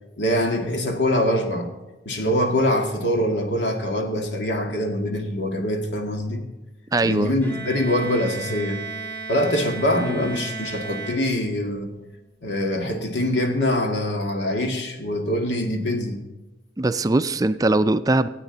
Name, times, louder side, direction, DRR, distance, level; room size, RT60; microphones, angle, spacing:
voice 1, 0.2-1.7 2.1-6.4 7.0-8.8 9.3-11.9 12.4-16.2, left 1 dB, 90° left, 3 dB, 2.0 m, -24 dB
voice 2, 6.9-7.3 16.8-18.3, right 2 dB, 20° right, 11 dB, 0.4 m, -20 dB
Bowed string instrument, 7.4-11.9, right 5 dB, 10° left, 1.8 m, -35 dB
25.5 x 8.9 x 3.9 m, 1.1 s
head